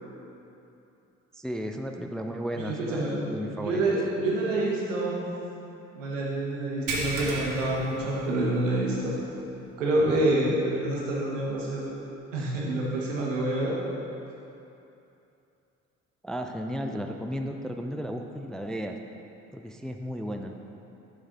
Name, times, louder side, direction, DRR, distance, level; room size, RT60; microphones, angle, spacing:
voice 1, 1.3-4.0 16.2-19.0 19.5-20.5, equal, ahead, 4 dB, 0.4 m, -34 dB
voice 2, 2.6-3.3 3.6-5.2 5.9-9.2 9.8-12.0 12.3-13.8, right 1 dB, 80° right, -4 dB, 1.5 m, -27 dB
sound 1, 6.9-8.8 9.1-9.3 9.8-9.9 11.5-11.6, right 2 dB, 55° right, 1.4 m, -34 dB
9.3 x 6.4 x 4.0 m, 2.8 s
figure-of-eight pair, 50°, 38 cm